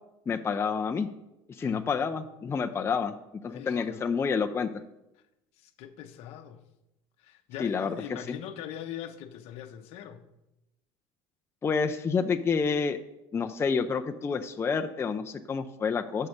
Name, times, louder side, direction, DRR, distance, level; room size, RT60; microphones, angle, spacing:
voice 1, 0.3-1.1 1.6-3.1 3.4-4.7 7.6-8.0 8.3-8.4 11.6-13.0 13.3-16.3, left 5 dB, 20° left, 0.5 m, -28 dB
voice 2, 1.5-1.9 3.5-4.1 5.6-6.6 7.2-10.2, left 10 dB, 65° left, 0.7 m, -42 dB
5.8 x 5.4 x 6.5 m
supercardioid pair, 105°, 11 cm